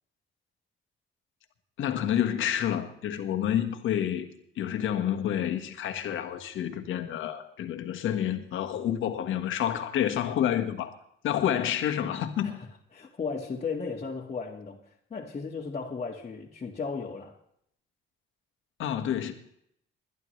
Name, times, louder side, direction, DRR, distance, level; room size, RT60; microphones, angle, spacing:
voice 1, 1.8-4.3 4.6-10.9 11.2-12.6 18.8-19.3, left 10 dB, 80° left, 1.6 m, -29 dB
voice 2, 12.4-17.4, left 5 dB, 35° left, 1.8 m, -36 dB
21.5 x 11.0 x 3.3 m
cardioid pair, 90°, 20 cm